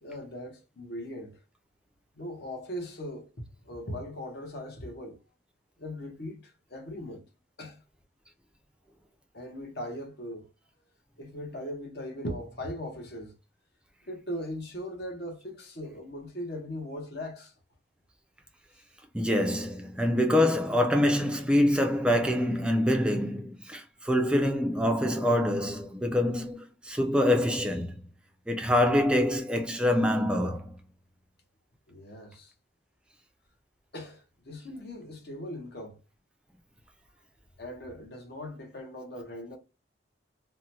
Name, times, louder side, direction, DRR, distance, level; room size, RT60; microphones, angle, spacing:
voice 1, 0.0-1.4 2.2-3.3 3.6-5.2 5.8-7.3 7.6-7.8 9.3-10.5 11.2-13.3 14.1-17.5 31.9-32.5 33.9-36.0 37.6-39.6, left 1 dB, 55° left, 1.0 m, -39 dB
voice 2, 19.1-27.9 28.5-30.8, left 1 dB, 5° right, 0.4 m, -25 dB
3.6 x 2.1 x 2.8 m
head